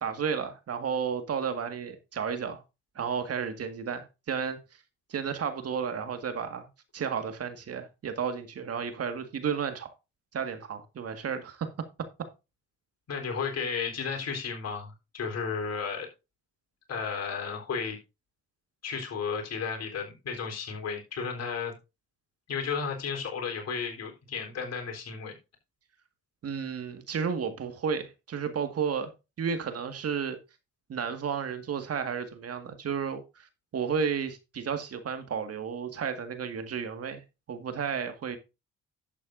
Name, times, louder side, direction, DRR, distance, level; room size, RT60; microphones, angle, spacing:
voice 1, 0.0-2.6 3.0-4.6 5.1-6.7 6.9-9.9 10.3-11.7 26.4-29.1 29.4-30.4 30.9-33.5 33.7-37.2 37.5-38.4, right 6 dB, 55° right, 1.9 m, -32 dB
voice 2, 13.1-16.1 16.9-18.0 18.8-21.7 22.5-25.3, left 5 dB, 60° left, 3.9 m, -33 dB
11.5 x 8.3 x 2.6 m
supercardioid pair, 60°, 29 cm